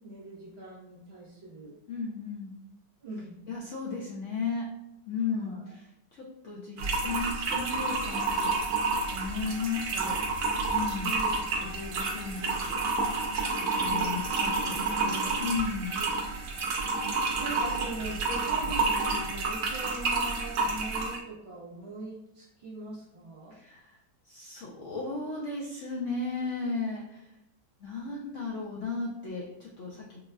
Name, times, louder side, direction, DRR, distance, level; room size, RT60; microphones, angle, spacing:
voice 1, 0.0-1.8 3.0-3.4 5.2-5.7 11.0-11.8 13.8-14.2 14.7-15.1 16.0-16.1 17.4-23.5, right 2 dB, 45° right, -6 dB, 1.1 m, -41 dB
voice 2, 1.9-2.5 3.5-4.7 5.1-5.8 6.1-8.8 9.1-10.2 10.7-11.1 11.6-12.9 13.5-16.0 23.5-24.0 24.2-27.3 27.8-30.2, left 4 dB, 75° left, -4 dB, 0.7 m, -35 dB
sound 1, 6.8-21.2, right 3 dB, 70° right, 0.8 m, -29 dB
3.9 x 2.4 x 2.3 m, 0.85 s
omnidirectional pair, 1.9 m